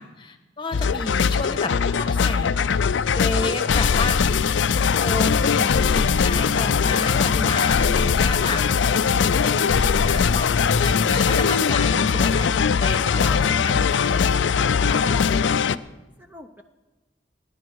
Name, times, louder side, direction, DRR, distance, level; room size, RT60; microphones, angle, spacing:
voice 1, 0.0-2.5 3.1-10.5 10.8-14.3 14.8-15.1, left 3 dB, 25° left, 7 dB, 1.3 m, -31 dB
sound 1, 0.7-15.8, left 6 dB, 70° left, 0.4 m, -20 dB
voice 2, 14.8-15.8 16.2-16.6, left 1 dB, 10° right, 4 dB, 0.7 m, -41 dB
28.0 x 11.0 x 4.7 m, 1.1 s
head